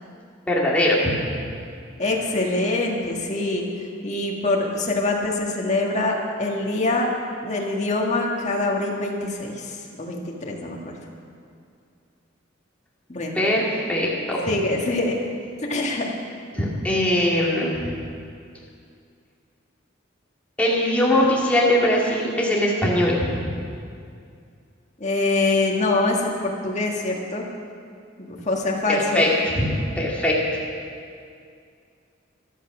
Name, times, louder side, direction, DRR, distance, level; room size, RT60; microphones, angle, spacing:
voice 1, 0.5-1.1 13.3-14.5 16.5-17.9 20.6-23.4 28.9-29.3 29.5-30.4, left 1 dB, 5° left, -5 dB, 2.4 m, -21 dB
voice 2, 2.0-3.7 4.0-7.1 7.4-10.9 13.1-13.4 14.5-15.2 15.7-16.2 25.0-27.5 28.2-29.3, left 2 dB, 35° left, -1 dB, 1.9 m, -24 dB
14.0 x 12.0 x 6.2 m, 2.3 s
head